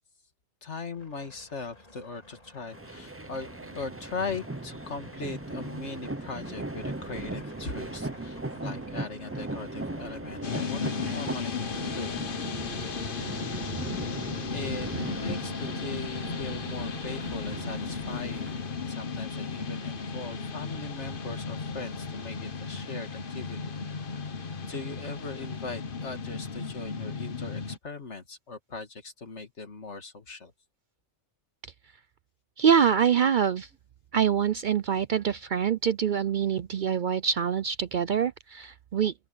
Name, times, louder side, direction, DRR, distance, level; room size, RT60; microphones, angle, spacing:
voice 1, 0.6-12.2 14.5-24.0 24.6-30.5, left 4 dB, 75° left, 2.5 m, -40 dB
sound 1, 0.9-12.4, left 1 dB, 30° left, 3.9 m, -51 dB
sound 2, 2.7-19.0, right 2 dB, 15° right, 0.6 m, -38 dB
sound 3, 10.4-27.8, left 5 dB, 50° left, 1.3 m, -35 dB
voice 2, 32.6-33.7 34.1-39.1, right 8 dB, 55° right, 0.6 m, -25 dB
open air
omnidirectional pair, 1.2 m